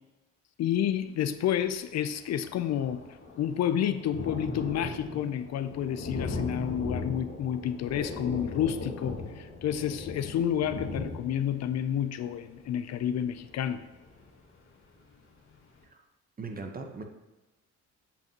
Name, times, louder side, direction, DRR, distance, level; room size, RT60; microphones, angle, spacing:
voice 1, 0.6-3.0 3.4-13.8, left 9 dB, 60° left, 11 dB, 0.5 m, -30 dB
Thunder, 1.6-1.7 2.0-14.6 15.1-15.2 15.5-15.6, left 3 dB, 40° left, 1.6 m, -38 dB
voice 2, 16.4-17.0, right 4 dB, 30° right, 5 dB, 0.9 m, -38 dB
8.2 x 5.3 x 2.9 m, 1.1 s
cardioid pair, 90°, 30 cm